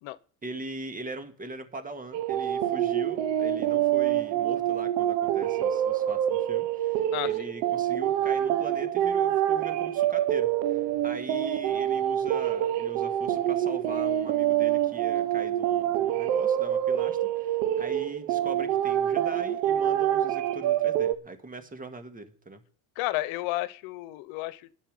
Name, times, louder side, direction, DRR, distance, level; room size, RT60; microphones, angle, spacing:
voice 1, 0.4-22.6, right 2 dB, 15° right, 1.9 m, -41 dB
sound 1, 2.1-21.2, right 11 dB, 85° right, 1.2 m, -26 dB
voice 2, 7.1-7.5 23.0-24.7, left 18 dB, 70° left, 1.2 m, -32 dB
10.0 x 7.2 x 8.8 m
supercardioid pair, 110°, 50 cm